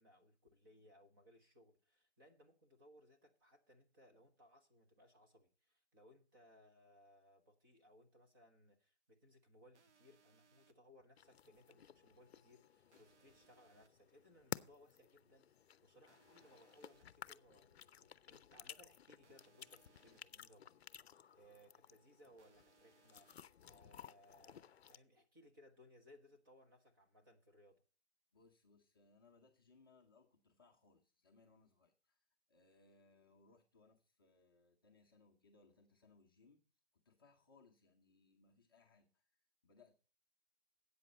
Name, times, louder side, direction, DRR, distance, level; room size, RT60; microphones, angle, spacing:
voice 1, 0.0-27.8, equal, 20° right, 3 dB, 1.1 m, -66 dB
sound 1, 9.7-10.7 12.9-13.9 16.1-17.0 19.2-20.2 22.4-23.4, right 6 dB, 90° right, 1.1 m, -72 dB
sound 2, 11.2-25.0, left 9 dB, 65° left, 0.6 m, -55 dB
voice 2, 28.3-36.7 36.9-39.9, left 4 dB, 20° left, -1 dB, 0.7 m, -69 dB
13.5 x 8.5 x 4.2 m, 0.37 s
hypercardioid pair, 175°, 34 cm